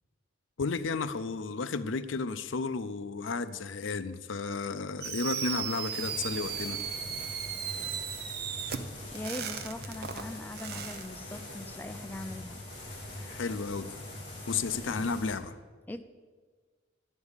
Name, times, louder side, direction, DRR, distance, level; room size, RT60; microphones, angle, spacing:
voice 1, 0.6-6.8 13.2-13.9 14.5-15.5, left 4 dB, 80° left, 13 dB, 0.5 m, -33 dB
Fireworks, 5.0-11.1, right 8 dB, 50° right, 0.6 m, -36 dB
sound 1, 5.9-15.3, left 1 dB, 25° left, 2.1 m, -43 dB
voice 2, 9.1-12.8 15.9-16.0, left 1 dB, 10° left, 8 dB, 0.3 m, -41 dB
11.0 x 5.3 x 8.1 m, 1.5 s
head